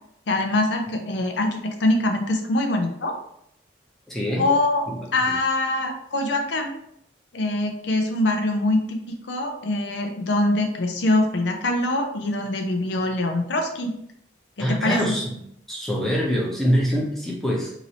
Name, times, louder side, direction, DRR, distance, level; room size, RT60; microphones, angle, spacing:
voice 1, 0.3-3.1 4.4-6.8 7.3-9.0 9.3-14.0 14.6-15.0, left 2 dB, 80° left, 3 dB, 0.6 m, -23 dB
voice 2, 4.1-4.5 5.3-5.4 14.6-15.4 15.7-17.7, equal, ahead, -4 dB, 0.8 m, -24 dB
3.0 x 2.7 x 4.1 m, 0.71 s
head